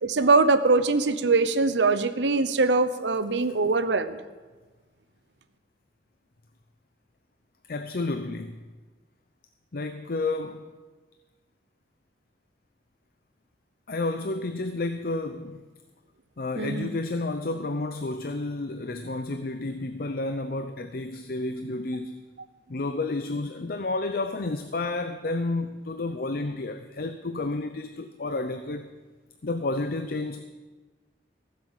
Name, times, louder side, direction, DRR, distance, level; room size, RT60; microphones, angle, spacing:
voice 1, 0.0-4.2 16.6-16.9, right 3 dB, 85° right, 11 dB, 0.8 m, -22 dB
voice 2, 7.7-8.5 9.7-10.6 13.9-15.6 16.4-22.2 22.7-28.9 29.4-30.4, left 2 dB, 55° left, 8 dB, 0.6 m, -31 dB
16.0 x 7.6 x 7.4 m, 1.3 s
head